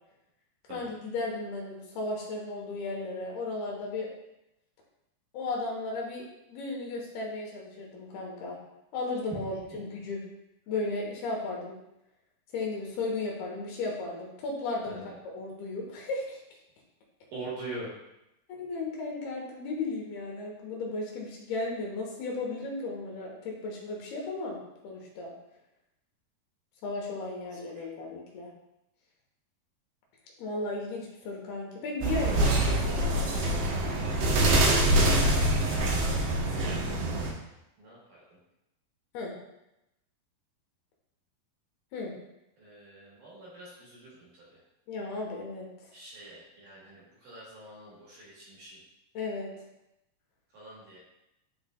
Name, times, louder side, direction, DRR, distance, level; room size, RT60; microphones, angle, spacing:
voice 1, 0.7-4.1 5.3-8.6 8.9-10.2 10.7-11.8 12.5-15.0 15.2-16.4 18.5-24.6 24.8-25.3 26.8-28.5 30.4-33.4 39.1-39.3 41.9-42.1 44.9-45.9 49.1-49.5, left 3 dB, 75° left, -2 dB, 2.9 m, -35 dB
voice 2, 17.3-17.9 27.8-27.9 35.2-36.1 37.8-38.2 42.6-44.6 45.9-48.8 50.5-51.0, right 2 dB, 60° right, -6 dB, 2.4 m, -44 dB
sound 1, 32.0-37.3, right 1 dB, 85° right, 1.6 m, -25 dB
11.0 x 3.8 x 2.3 m, 0.89 s
omnidirectional pair, 4.8 m